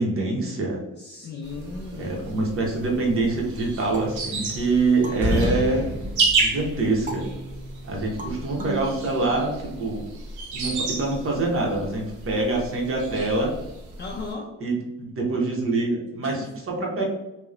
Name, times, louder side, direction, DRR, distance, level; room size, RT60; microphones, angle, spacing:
voice 1, 0.0-0.8 2.0-5.9 6.3-7.3 7.8-10.0 10.5-13.5 14.6-17.0, right 2 dB, 45° right, -1 dB, 0.8 m, -25 dB
voice 2, 0.9-2.2 14.0-14.5 16.2-16.5, left 3 dB, 35° left, -1 dB, 0.4 m, -36 dB
sound 1, 1.4-14.3, right 3 dB, 80° right, 0.7 m, -32 dB
sound 2, 3.9-6.4 7.1-9.9, right 2 dB, 30° right, 0.5 m, -39 dB
sound 3, 4.2-4.8 5.1-7.2, equal, 10° right, 1.5 m, -28 dB
2.8 x 2.1 x 2.4 m, 0.94 s
cardioid pair, 90°, 30 cm